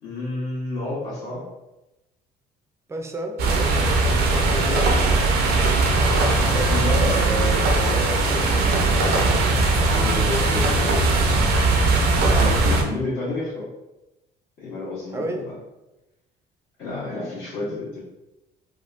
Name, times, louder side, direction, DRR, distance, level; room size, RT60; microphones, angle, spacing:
voice 1, 0.0-1.5 4.6-5.0 6.1-11.1 12.1-13.7 14.6-15.4 16.8-18.0, left 2 dB, 70° left, -12 dB, 1.2 m, -30 dB
voice 2, 2.9-5.1 15.1-15.4, right 1 dB, 15° right, 3 dB, 0.4 m, -32 dB
sound 1, 3.4-12.8, right 3 dB, 70° right, 0.6 m, -19 dB
3.4 x 2.3 x 2.4 m, 0.98 s
cardioid pair, 110°, 17 cm